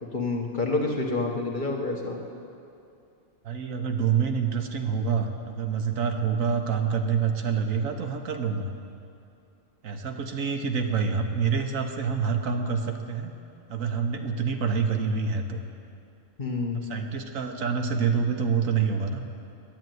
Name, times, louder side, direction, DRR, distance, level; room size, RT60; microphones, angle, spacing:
voice 1, 0.0-2.2 16.4-16.9, left 3 dB, 40° left, 0 dB, 1.4 m, -28 dB
voice 2, 3.4-8.7 9.8-13.3 13.7-15.6 16.9-19.2, right 6 dB, 80° right, 5 dB, 1.4 m, -27 dB
10.5 x 9.3 x 9.3 m, 2.5 s
omnidirectional pair, 1.4 m